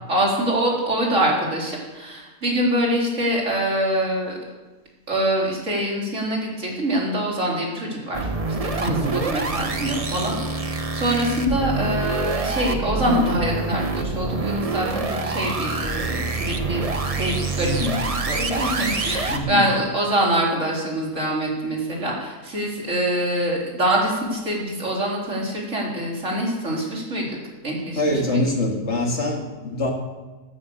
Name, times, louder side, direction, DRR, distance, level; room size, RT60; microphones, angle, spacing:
voice 1, 0.1-4.3 5.1-8.3 8.6-16.8 17.1-17.7 18.2-27.3 27.6-28.0 28.3-28.4, right 1 dB, 75° right, -2 dB, 3.9 m, -24 dB
sound 1, 8.1-19.4, right 3 dB, 30° right, 1.0 m, -26 dB
voice 2, 8.9-9.2 17.6-18.0 19.3-19.7 27.9-29.9, left 1 dB, 60° left, 1 dB, 2.5 m, -24 dB
15.0 x 9.9 x 6.7 m, 1.2 s
omnidirectional pair, 1.3 m